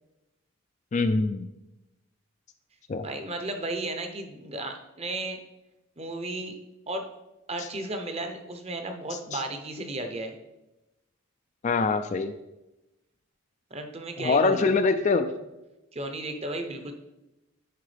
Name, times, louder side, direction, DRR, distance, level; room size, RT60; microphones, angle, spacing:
voice 1, 0.9-1.5 2.9-3.1 9.1-9.4 11.6-12.3 14.2-15.3, left 4 dB, 35° left, 8 dB, 0.3 m, -24 dB
voice 2, 3.0-5.4 6.0-6.5 6.9-7.1 7.5-10.4 13.7-14.7 15.9-16.9, right 2 dB, 30° right, 5 dB, 0.7 m, -34 dB
10.0 x 4.7 x 3.4 m, 0.97 s
head